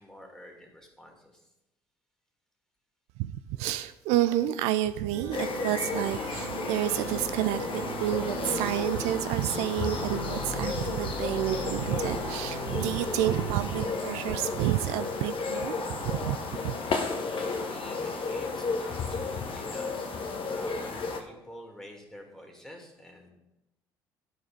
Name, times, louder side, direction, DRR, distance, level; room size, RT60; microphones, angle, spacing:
voice 1, 0.0-1.5 17.2-20.1 20.5-23.3, equal, 5° left, 1 dB, 2.5 m, -48 dB
voice 2, 3.2-16.4 16.6-16.8, right 13 dB, 70° right, 12 dB, 0.4 m, -29 dB
sound 1, 5.1-16.5, right 1 dB, 85° right, 1.2 m, -40 dB
sound 2, 5.3-21.2, left 4 dB, 50° left, 1.3 m, -33 dB
11.5 x 4.7 x 5.0 m, 0.94 s
hypercardioid pair, 55°, 12 cm